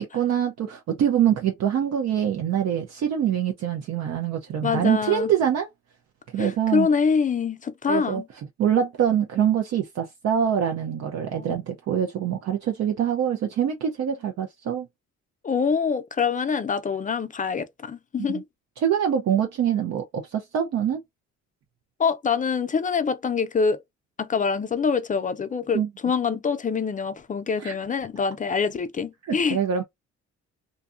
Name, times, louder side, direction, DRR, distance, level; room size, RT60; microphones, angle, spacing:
voice 1, 0.0-5.7 6.3-6.9 7.9-8.2 8.6-14.9 18.2-18.4 18.8-21.0 25.7-25.9 27.6-27.7 29.3-29.8, right 9 dB, 60° right, 0.5 m, -24 dB
voice 2, 4.6-5.3 6.4-8.2 11.4-11.6 15.4-18.4 22.0-23.8 24.2-29.6, left 5 dB, 25° left, 0.4 m, -25 dB
2.6 x 2.2 x 2.4 m
cardioid pair, 90°, 30 cm